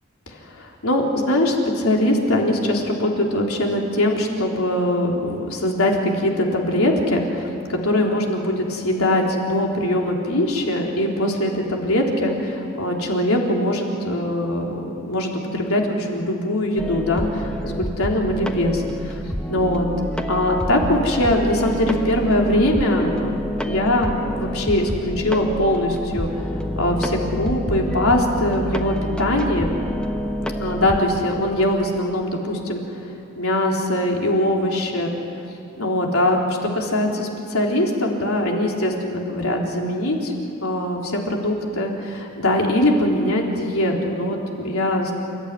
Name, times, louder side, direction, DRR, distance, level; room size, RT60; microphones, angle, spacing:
voice 1, 0.3-19.2 19.5-19.9 20.3-23.3 23.7-26.3 26.8-29.7 30.6-33.1 33.4-35.1 35.8-40.3 40.6-45.1, left 1 dB, 90° left, 0 dB, 3.7 m, -22 dB
sound 1, 16.8-31.1, equal, 5° left, 1.1 m, -28 dB
29.5 x 14.0 x 9.9 m, 2.8 s
head